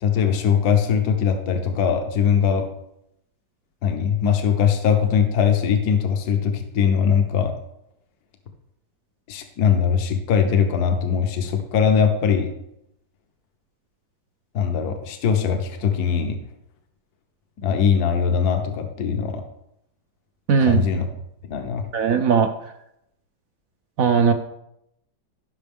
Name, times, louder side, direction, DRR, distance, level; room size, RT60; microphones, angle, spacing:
voice 1, 0.0-2.7 3.8-7.5 9.3-12.5 14.5-16.4 17.6-19.4 20.6-21.1 21.5-21.8, left 7 dB, 60° left, 6 dB, 1.4 m, -21 dB
voice 2, 20.5-20.8 21.9-22.5 24.0-24.3, right 6 dB, 65° right, 6 dB, 0.9 m, -18 dB
15.5 x 5.9 x 3.6 m, 0.80 s
omnidirectional pair, 2.0 m